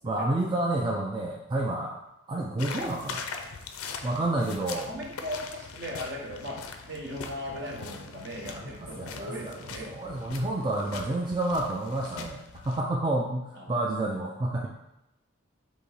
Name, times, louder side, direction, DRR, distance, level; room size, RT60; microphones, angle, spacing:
voice 1, 0.0-2.0 2.3-3.3 4.0-4.9 8.5-9.5 9.8-14.7, right 2 dB, 20° right, -2 dB, 0.3 m, -29 dB
sound 1, 2.6-12.8, left 5 dB, 90° left, 0.5 m, -41 dB
voice 2, 4.9-9.9 13.5-13.8, equal, 55° right, 0 dB, 0.9 m, -38 dB
sound 2, 7.5-11.2, left 2 dB, 80° right, 1.2 m, -54 dB
4.0 x 2.8 x 4.7 m, 0.89 s
head